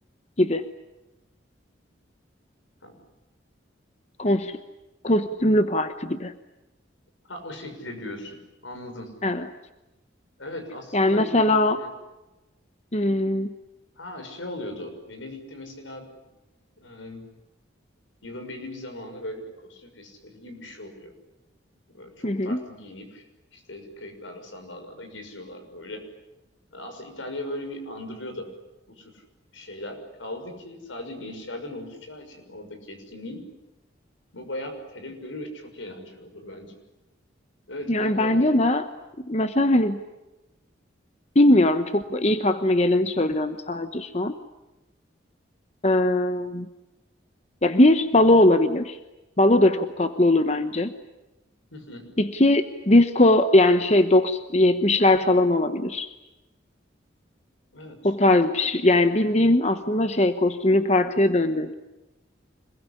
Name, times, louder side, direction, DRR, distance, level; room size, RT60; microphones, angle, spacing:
voice 1, 4.2-4.6 5.0-6.3 9.2-9.5 10.9-11.8 12.9-13.5 22.2-22.6 37.9-38.8 39.2-40.0 41.3-44.3 45.8-46.7 47.6-49.0 49.4-50.9 52.2-56.1 58.0-61.7, left 1 dB, 35° left, 9 dB, 1.0 m, -20 dB
voice 2, 7.3-9.1 10.4-11.9 14.0-16.0 16.8-17.3 18.2-21.1 21.9-26.0 26.7-28.5 28.9-29.2 29.5-33.4 34.3-36.7 37.7-38.5 51.7-52.1 57.7-58.1, left 1 dB, 85° left, 7 dB, 6.2 m, -38 dB
26.0 x 21.5 x 9.9 m, 1.0 s
head